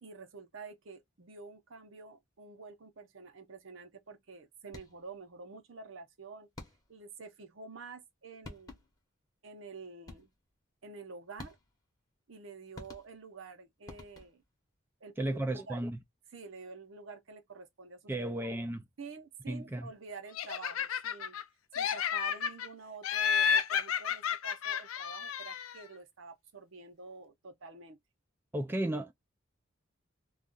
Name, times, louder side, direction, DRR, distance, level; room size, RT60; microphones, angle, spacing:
voice 1, 0.0-6.5 6.9-8.8 9.4-10.3 10.8-11.6 12.3-14.4 15.0-15.8 16.3-18.4 19.0-21.3 21.7-28.0, right 4 dB, 70° right, 0.7 m, -48 dB
sound 1, 4.7-5.2 6.6-7.1 8.1-8.2 8.4-9.1 10.1-10.5 11.4-11.9 12.7-13.4 13.9-14.6, left 2 dB, 20° left, 0.8 m, -50 dB
voice 2, 15.2-16.0 18.1-18.8 19.5-19.9 28.5-29.1, right 1 dB, 10° right, 0.3 m, -34 dB
Laughter, 20.3-21.4 21.7-22.7 23.0-25.8, left 7 dB, 90° left, 0.4 m, -31 dB
2.4 x 2.3 x 3.7 m
head